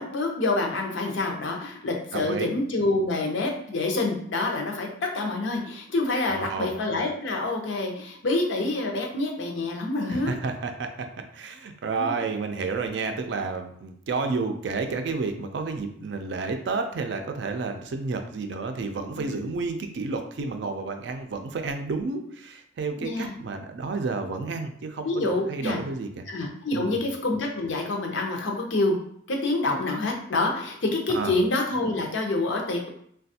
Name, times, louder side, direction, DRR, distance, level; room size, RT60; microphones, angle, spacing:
voice 1, 0.0-4.9 5.1-10.3 11.9-12.2 19.2-19.4 23.0-23.3 25.0-25.8 26.3-29.0 29.3-32.9, left 2 dB, 80° left, 1 dB, 0.6 m, -27 dB
voice 2, 2.1-2.5 6.3-6.7 10.1-11.1 11.3-26.3 26.7-27.1 31.1-31.3, right 4 dB, 65° right, 6 dB, 0.4 m, -31 dB
3.3 x 2.2 x 2.7 m, 0.67 s
head